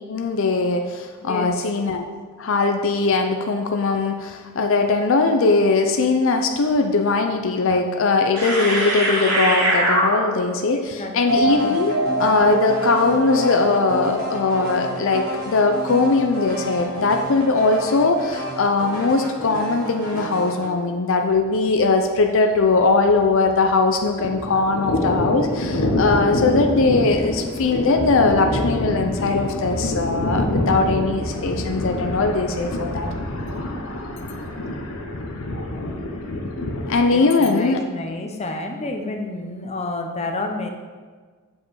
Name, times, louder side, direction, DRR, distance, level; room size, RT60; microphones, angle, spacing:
voice 1, 0.1-2.0 2.4-33.1 36.9-37.8, left 3 dB, 65° left, 5 dB, 0.5 m, -20 dB
voice 2, 1.3-1.7 10.7-11.4 37.1-40.7, left 2 dB, 30° left, 3 dB, 0.7 m, -30 dB
sound 1, 7.6-7.7 8.3-10.5 11.3-20.7, right 1 dB, 90° right, 2.3 m, -25 dB
Thunder, 21.3-21.5 21.8-21.9 22.2-23.7 24.0-36.9, left 1 dB, 85° left, 1.0 m, -26 dB
7.5 x 5.1 x 4.7 m, 1.5 s
head